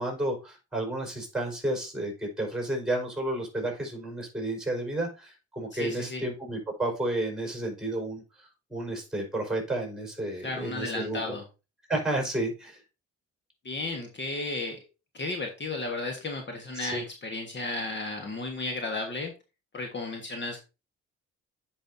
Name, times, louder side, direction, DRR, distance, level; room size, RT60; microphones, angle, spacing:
voice 1, 0.0-8.2 8.7-11.3 11.9-12.8 16.8-17.0, right 1 dB, ahead, 1 dB, 4.7 m, -31 dB
voice 2, 5.7-6.3 10.4-11.4 13.6-14.8 15.1-19.3 19.7-20.6, left 2 dB, 35° left, 3 dB, 1.4 m, -34 dB
10.0 x 5.5 x 2.7 m, 0.29 s
cardioid pair, 90°, 30 cm